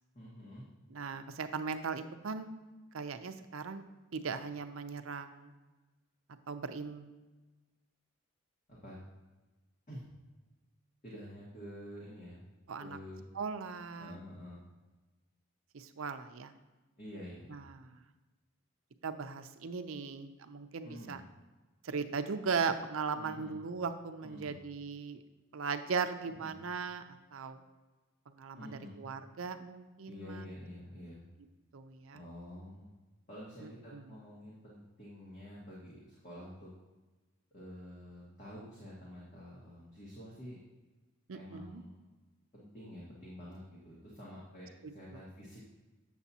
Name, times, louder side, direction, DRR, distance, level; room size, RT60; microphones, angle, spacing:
voice 1, 0.1-0.7 8.7-9.0 9.9-10.1 11.0-12.4 12.8-13.2 14.0-14.6 17.0-17.6 20.8-21.2 23.2-23.6 24.2-24.6 26.4-26.6 28.5-29.0 30.1-31.2 32.1-32.9 33.3-36.7 37.5-40.6 41.3-42.1 42.5-45.7, left 1 dB, 40° left, -6 dB, 1.5 m, -48 dB
voice 2, 0.9-2.5 2.9-3.8 4.1-5.5 6.5-7.1 12.7-13.0 13.3-14.2 15.7-16.5 17.5-18.0 19.0-21.2 21.8-25.2 25.5-27.6 28.3-30.5 31.7-32.2 33.6-34.1 41.3-41.8 44.8-45.2, right 5 dB, 75° right, 9 dB, 0.5 m, -38 dB
7.8 x 7.1 x 2.8 m, 1.2 s
head